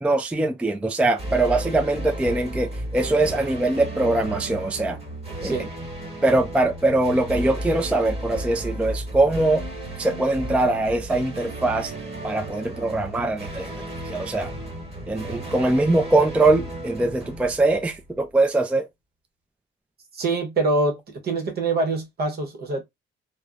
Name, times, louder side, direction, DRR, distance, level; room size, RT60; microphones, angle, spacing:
voice 1, 0.0-5.0 5.4-5.6 6.2-9.6 10.0-11.9 12.2-13.7 14.0-14.5 15.1-18.9, right 2 dB, 5° right, 0.3 m, -22 dB
sound 1, 1.2-18.2, right 1 dB, 30° right, 1.3 m, -34 dB
voice 2, 20.1-22.8, right 2 dB, 50° right, 0.9 m, -25 dB
3.2 x 2.0 x 2.3 m
cardioid pair, 90°, 20 cm